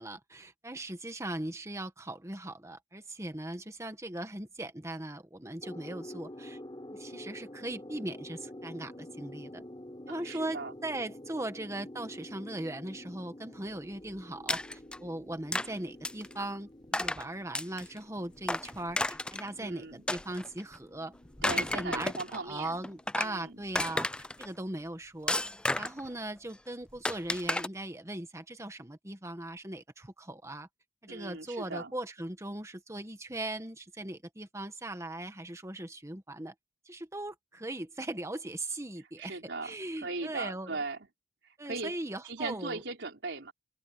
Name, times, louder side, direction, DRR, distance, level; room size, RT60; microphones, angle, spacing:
voice 1, 0.0-6.6 6.9-9.6 10.1-14.6 15.0-21.1 21.5-24.1 24.4-25.4 25.8-30.7 31.0-36.5 36.8-40.8 41.6-42.8, right 1 dB, 15° right, 1.6 m, -39 dB
sound 1, 5.6-24.9, left 1 dB, 25° left, 4.7 m, -49 dB
voice 2, 10.1-10.7 19.6-20.0 21.4-22.8 23.2-23.6 31.1-31.9 39.2-39.7 40.0-41.0 41.4-42.0 42.2-43.5, right 3 dB, 90° right, 3.7 m, -38 dB
sound 2, 14.5-15.0 15.5-15.7 16.0-16.3 16.9-17.2 17.6-18.0 18.5-19.5 20.1-20.8 21.3-22.4 22.8-23.4 23.8-24.5 25.3-26.1 27.1-27.7, left 1 dB, 5° left, 0.3 m, -32 dB
open air
head